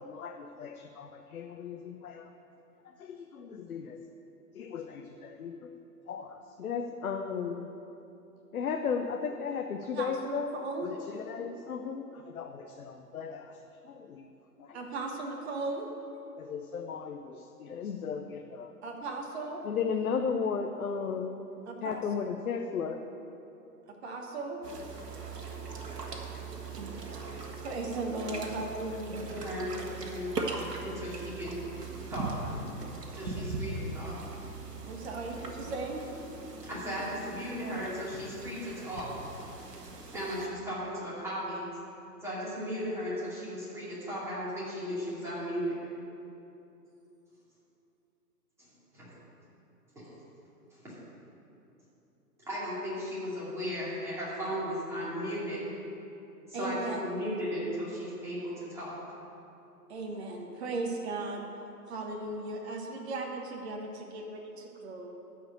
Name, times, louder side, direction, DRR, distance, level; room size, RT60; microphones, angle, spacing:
voice 1, 0.0-2.3 2.8-4.0 4.5-5.7 6.1-7.7 8.5-10.5 10.8-14.3 14.6-14.8 16.4-18.7 19.6-21.4 21.8-23.0, left 6 dB, 60° left, 4 dB, 0.8 m, -35 dB
voice 2, 9.9-10.9 14.7-15.9 18.8-19.7 21.7-22.0 23.9-24.6 26.8-26.9 27.6-29.2 34.8-36.0 56.5-57.0 59.9-61.4 61.9-65.1, right 3 dB, 40° right, 1 dB, 1.3 m, -37 dB
sound 1, 24.6-40.5, right 3 dB, 75° right, 1.8 m, -40 dB
voice 3, 29.1-31.5 32.1-32.6 33.1-34.2 36.6-39.1 40.1-41.7 42.2-45.8 48.6-49.1 50.0-50.2 50.7-51.0 52.5-55.6 56.5-58.9, equal, 5° right, -9 dB, 2.4 m, -36 dB
13.0 x 4.8 x 8.0 m, 2.9 s
hypercardioid pair, 150°, 48 cm